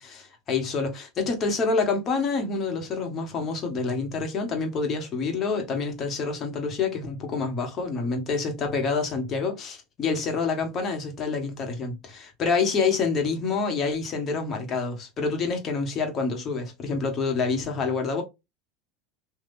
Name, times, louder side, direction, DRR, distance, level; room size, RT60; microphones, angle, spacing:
voice 1, 0.0-18.2, left 4 dB, 40° left, 1.5 m, -27 dB
3.5 x 2.7 x 2.6 m
hypercardioid pair, 90°, 0 cm